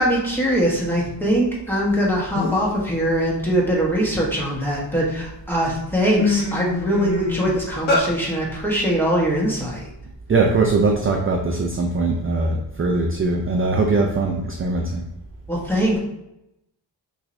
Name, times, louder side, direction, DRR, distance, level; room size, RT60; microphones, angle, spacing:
voice 1, 0.0-9.9 15.5-16.0, equal, 5° left, -4 dB, 1.0 m, -22 dB
sound 1, 2.0-2.1 2.3-2.8 3.2-4.8 5.4-5.5 5.8-8.1, left 3 dB, 90° left, 1.2 m, -24 dB
voice 2, 10.3-15.0, right 3 dB, 30° right, 1 dB, 0.4 m, -21 dB
5.9 x 3.2 x 2.6 m, 0.84 s
wide cardioid pair, 180°, 45 cm